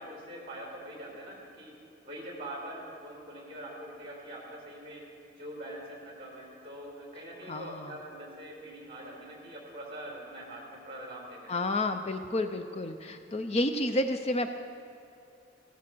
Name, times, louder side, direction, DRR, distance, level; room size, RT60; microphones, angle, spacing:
voice 1, 0.0-1.7 2.0-5.0 5.3-11.5, right 1 dB, 30° right, -1 dB, 4.4 m, -43 dB
voice 2, 7.5-7.8 11.5-14.5, left 1 dB, 35° left, 8 dB, 0.6 m, -30 dB
16.0 x 14.0 x 6.1 m, 2.7 s
head